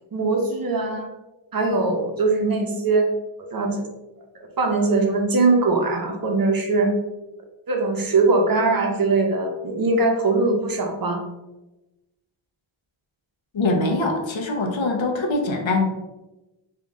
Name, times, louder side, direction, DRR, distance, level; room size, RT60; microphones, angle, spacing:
voice 1, 0.1-1.1 1.5-3.1 3.5-3.8 4.6-6.9 7.7-11.2, right 3 dB, 45° right, 2 dB, 0.7 m, -21 dB
voice 2, 13.5-15.8, left 2 dB, 70° left, 1 dB, 0.9 m, -23 dB
3.6 x 2.8 x 3.7 m, 1.0 s
wide cardioid pair, 125°, 48 cm